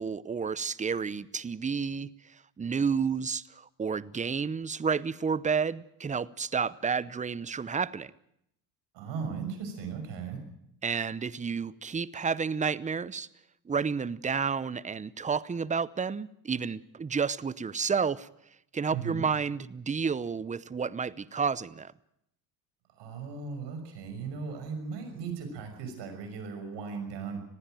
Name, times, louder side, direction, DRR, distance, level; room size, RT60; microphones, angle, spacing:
voice 1, 0.0-8.1 10.8-13.3 13.7-18.3 18.7-21.9, right 6 dB, 15° right, 0.7 m, -31 dB
voice 2, 8.9-10.4 18.9-19.2 23.0-27.4, right 5 dB, 70° right, 6.2 m, -37 dB
20.5 x 15.5 x 9.1 m
supercardioid pair, 85°, 43 cm